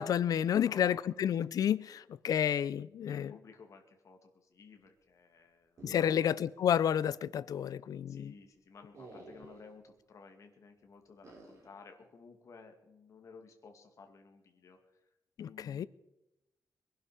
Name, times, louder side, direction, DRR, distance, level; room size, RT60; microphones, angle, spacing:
voice 1, 0.0-3.3 5.8-8.3 15.4-15.9, left 9 dB, 65° left, 0.5 m, -30 dB
voice 2, 0.5-1.3 3.1-6.3 8.1-14.8 15.4-15.9, left 5 dB, 50° left, 2.2 m, -55 dB
sound 1, 5.8-6.6 6.9-7.0 8.9-9.7 11.2-11.8, right 2 dB, 45° right, 4.9 m, -52 dB
22.5 x 11.5 x 5.0 m
wide cardioid pair, 155°, 7 cm